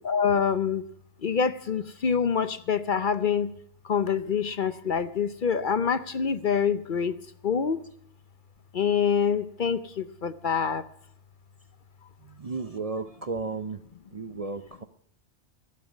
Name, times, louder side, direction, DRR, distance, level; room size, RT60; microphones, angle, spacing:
voice 1, 0.1-0.8 1.2-3.5 3.9-7.1 7.4-7.8 8.7-10.8, left 6 dB, 50° left, 12 dB, 0.8 m, -26 dB
voice 2, 12.2-13.8 14.1-14.8, right 4 dB, 40° right, 11 dB, 0.6 m, -34 dB
13.0 x 12.0 x 6.0 m, 0.66 s
omnidirectional pair, 1.2 m